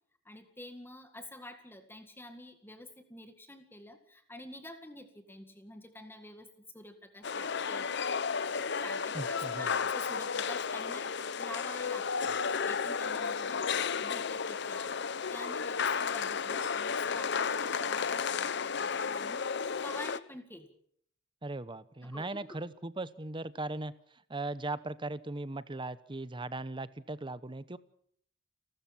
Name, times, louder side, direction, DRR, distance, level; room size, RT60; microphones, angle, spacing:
voice 1, 0.3-6.5 6.7-20.7 22.0-22.6, left 1 dB, 10° left, 7 dB, 2.0 m, -48 dB
sound 1, 7.2-20.2, left 6 dB, 65° left, 0.8 m, -33 dB
voice 2, 9.1-9.8 21.4-23.9 24.3-27.8, right 2 dB, 25° right, 15 dB, 0.9 m, -38 dB
30.0 x 13.5 x 7.2 m, 0.65 s
head